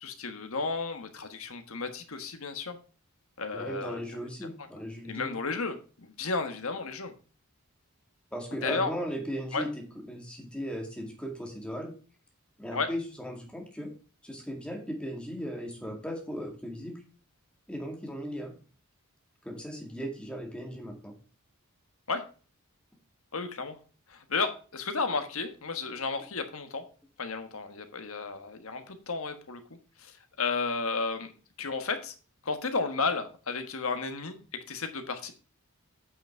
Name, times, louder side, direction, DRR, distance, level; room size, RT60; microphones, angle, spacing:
voice 1, 0.0-2.8 3.4-4.0 5.0-7.1 8.6-8.9 9.5-9.7 12.7-12.9 22.1-22.2 23.3-23.8 24.1-26.8 27.2-29.6 30.0-31.3 31.6-32.1 32.4-34.4 34.7-35.3, left 4 dB, 70° left, 8 dB, 1.4 m, -33 dB
voice 2, 3.5-5.4 8.3-9.8 10.1-11.9 12.6-13.9 14.2-17.0 17.7-18.5 19.4-21.1, equal, 5° left, 1 dB, 2.1 m, -37 dB
8.7 x 6.0 x 4.4 m, 0.36 s
head